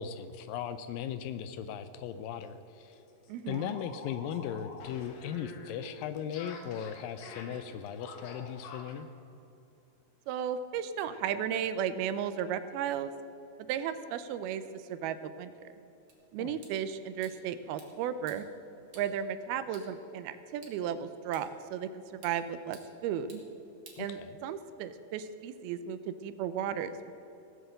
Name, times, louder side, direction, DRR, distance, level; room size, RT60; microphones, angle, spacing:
voice 1, 0.0-3.0 3.5-9.1 16.4-16.6 24.0-24.4, left 9 dB, 85° left, 11 dB, 2.0 m, -38 dB
sound 1, 2.0-2.1 2.4-2.5 2.9-9.0, left 3 dB, 65° left, 2.9 m, -47 dB
voice 2, 3.3-3.7 10.3-13.1 13.6-15.5 16.3-18.5 18.9-23.4 24.0-27.0, right 9 dB, 80° right, 11 dB, 2.4 m, -35 dB
sound 2, 16.1-24.7, right 3 dB, 35° right, 2.0 m, -59 dB
17.5 x 7.9 x 7.8 m, 2.8 s
omnidirectional pair, 4.6 m